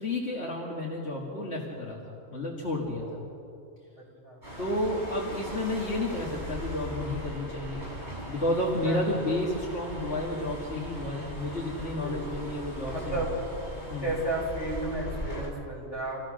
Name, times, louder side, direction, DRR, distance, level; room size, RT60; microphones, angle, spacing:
voice 1, 0.0-3.2 4.6-7.8 8.3-13.2 13.9-14.0, left 1 dB, 75° left, -3 dB, 2.4 m, -31 dB
voice 2, 4.0-4.4 8.8-9.0 12.0-12.2 12.9-13.3 14.0-16.2, right 2 dB, 30° left, -6 dB, 7.5 m, -33 dB
sound 1, 4.4-15.5, right 1 dB, 80° right, 6.9 m, -39 dB
26.5 x 16.5 x 6.5 m, 2.5 s
omnidirectional pair, 1.1 m